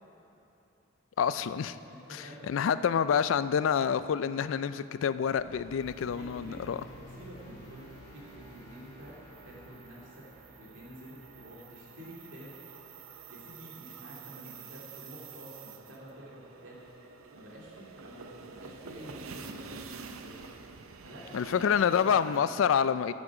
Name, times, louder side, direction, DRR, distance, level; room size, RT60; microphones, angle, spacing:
voice 1, 1.2-1.8 2.1-6.8 21.3-23.1, left 7 dB, 75° left, 14 dB, 0.3 m, -27 dB
voice 2, 1.8-2.9 6.1-6.6 6.9-9.2 9.4-10.3 10.5-12.6 13.3-16.8 17.3-20.4 21.0-21.6 22.0-22.4, equal, 65° right, -5 dB, 2.6 m, -49 dB
sound 1, 5.2-15.7, right 1 dB, 45° left, 2.2 m, -53 dB
sound 2, 5.9-22.4, right 5 dB, 90° right, 0.6 m, -49 dB
14.0 x 7.4 x 4.9 m, 3.0 s
head